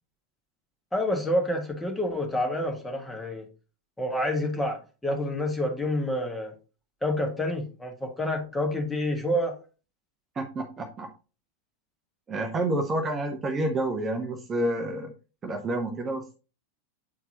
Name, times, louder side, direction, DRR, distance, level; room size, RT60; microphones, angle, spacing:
voice 1, 0.9-3.5 4.0-6.5 7.0-9.5, left 1 dB, 10° left, 3 dB, 1.5 m, -28 dB
voice 2, 10.3-11.1 12.3-15.1 15.4-16.3, right 1 dB, 20° right, 4 dB, 0.9 m, -29 dB
8.4 x 4.5 x 2.9 m, 0.33 s
figure-of-eight pair, 90°, 0 cm